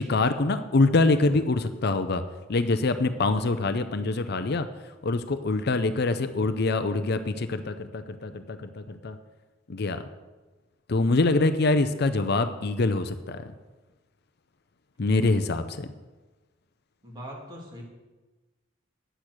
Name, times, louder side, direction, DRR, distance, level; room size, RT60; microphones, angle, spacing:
voice 1, 0.0-2.2 2.5-4.7 5.0-9.2 9.7-10.0 10.9-13.4 15.0-15.9, left 3 dB, 60° left, 10 dB, 0.6 m, -25 dB
voice 2, 15.0-15.4 17.0-17.8, equal, 25° right, -2 dB, 2.9 m, -41 dB
10.0 x 8.3 x 6.2 m, 1.2 s
head